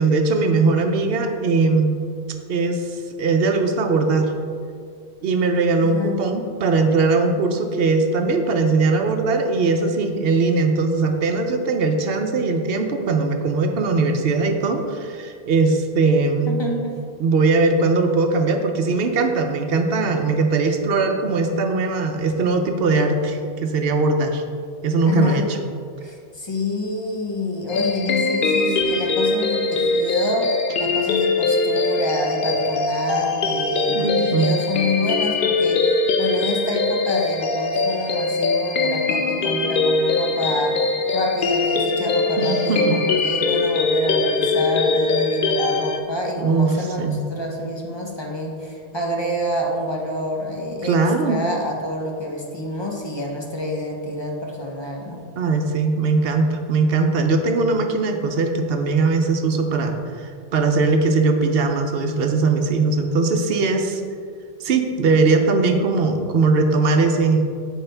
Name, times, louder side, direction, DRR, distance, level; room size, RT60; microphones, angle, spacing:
voice 1, 0.0-2.0 2.5-4.3 5.2-16.6 17.2-24.4 24.8-25.6 33.9-34.6 42.4-43.0 46.4-47.2 50.8-51.4 55.4-64.0 64.6-67.5, right 3 dB, 70° right, 5 dB, 0.8 m, -20 dB
voice 2, 5.8-6.2 16.5-17.0 25.1-25.5 26.0-55.2, left 1 dB, 30° left, 0 dB, 0.7 m, -27 dB
sound 1, 27.7-46.0, left 3 dB, 60° left, 0.7 m, -22 dB
7.9 x 4.7 x 3.3 m, 2.2 s
omnidirectional pair, 1.1 m